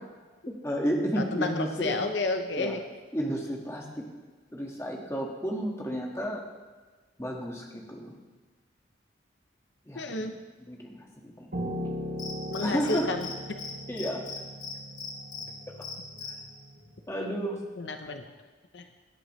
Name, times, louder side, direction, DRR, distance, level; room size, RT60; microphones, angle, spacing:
voice 1, 0.6-2.0 2.6-2.8 3.1-4.0 4.5-6.4 7.2-8.2 9.9-10.3 10.7-11.0 11.2-12.0 12.6-13.1 13.9-14.2 17.1-17.5, equal, 15° left, -1 dB, 1.7 m, -32 dB
voice 2, 1.2-2.8 10.0-10.3 12.5-13.6 17.8-18.2 18.7-18.8, left 3 dB, 75° left, 6 dB, 0.8 m, -31 dB
Piano, 11.5-16.8, equal, 55° right, 1.9 m, -38 dB
Cricket, 12.2-13.3 13.6-13.7 14.0-15.4 15.8-16.3, left 6 dB, 40° left, 1.7 m, -38 dB
18.0 x 11.0 x 3.2 m, 1.3 s
head